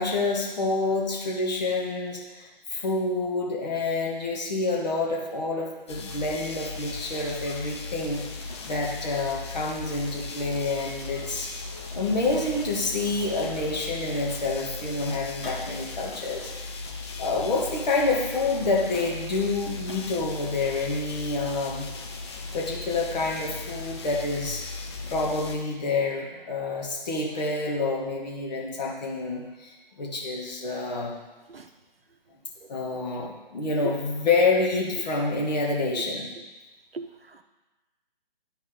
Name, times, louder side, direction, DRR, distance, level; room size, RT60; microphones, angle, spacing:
voice 1, 0.0-11.5 11.9-16.8 17.2-21.9 22.5-24.6 25.1-31.2 32.7-36.3, left 3 dB, 45° left, -2 dB, 1.8 m, -28 dB
sound 1, 5.9-25.6, left 3 dB, 30° left, 0.7 m, -37 dB
sound 2, 8.4-8.7 10.8-11.4 11.8-14.5 14.9-15.7 16.0-16.3 18.4-19.5 19.9-20.1, left 2 dB, 65° left, 2.3 m, -46 dB
voice 2, 36.9-37.4, right 3 dB, 75° right, 7 dB, 0.8 m, -41 dB
11.5 x 4.1 x 3.9 m, 1.2 s
figure-of-eight pair, 140°, 29 cm